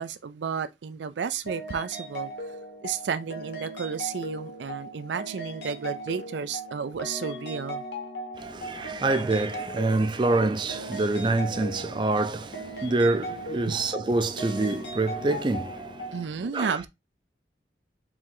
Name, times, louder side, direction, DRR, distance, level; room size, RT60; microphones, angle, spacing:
voice 1, 0.0-2.3 2.8-7.8 13.7-13.8 16.1-16.9, right 6 dB, 85° right, 0.4 m, -32 dB
sound 1, 1.5-16.2, right 1 dB, 70° left, 1.3 m, -38 dB
voice 2, 8.4-16.2 16.4-16.8, right 2 dB, 25° right, 0.4 m, -26 dB
4.5 x 2.6 x 3.7 m
head